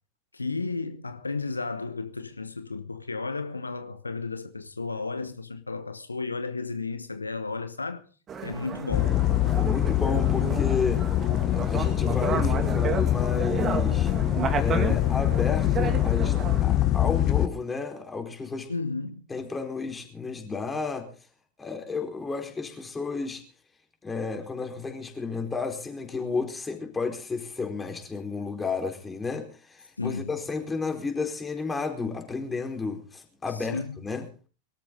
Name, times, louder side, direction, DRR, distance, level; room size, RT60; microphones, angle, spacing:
voice 1, 0.3-8.1 8.4-9.2 18.7-19.2 30.0-30.3 33.5-34.0, left 4 dB, 80° left, 1.0 m, -33 dB
sound 1, 8.3-16.6, right 6 dB, 25° right, 2.5 m, -32 dB
sound 2, 8.9-17.5, left 13 dB, 35° left, 0.9 m, -24 dB
voice 2, 9.5-11.0 11.5-14.1 14.6-18.7 19.3-21.1 21.6-23.4 24.0-34.2, left 4 dB, 15° left, 4.3 m, -32 dB
23.5 x 13.5 x 3.9 m
figure-of-eight pair, 90°, 0 cm